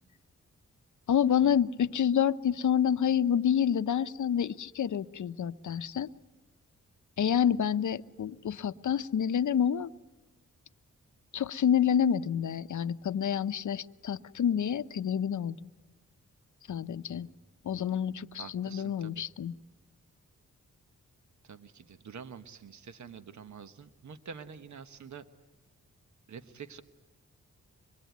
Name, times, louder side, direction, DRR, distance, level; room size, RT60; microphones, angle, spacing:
voice 1, 1.1-6.1 7.2-9.9 11.3-15.7 16.7-17.3 17.6-19.5, left 8 dB, 70° left, 13 dB, 0.8 m, -28 dB
voice 2, 18.4-19.3 21.4-25.3 26.3-26.8, right 6 dB, 65° right, 10 dB, 1.2 m, -47 dB
24.5 x 21.0 x 9.3 m, 1.1 s
cardioid pair, 75°, 32 cm